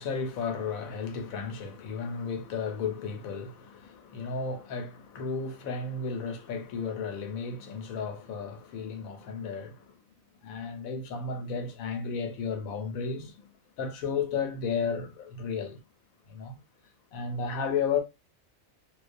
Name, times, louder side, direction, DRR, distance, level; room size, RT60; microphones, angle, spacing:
voice 1, 0.0-10.0 10.4-13.5 13.8-15.8 16.3-16.6 17.1-18.0, left 5 dB, 85° left, 1.1 m, -33 dB
2.3 x 2.1 x 2.5 m
omnidirectional pair, 1.4 m